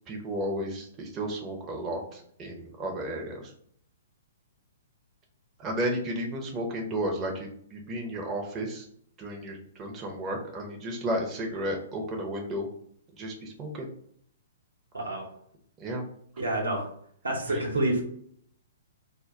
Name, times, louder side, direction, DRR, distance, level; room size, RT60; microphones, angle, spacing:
voice 1, 0.1-3.5 5.6-8.9 9.2-12.7 13.2-13.9 15.8-16.0 17.5-17.6, right 1 dB, 25° right, 1 dB, 0.5 m, -33 dB
voice 2, 14.9-15.3 16.4-16.9 17.2-18.0, right 1 dB, 80° right, 0 dB, 0.8 m, -28 dB
2.2 x 2.1 x 3.6 m, 0.65 s
figure-of-eight pair, 115°, 0 cm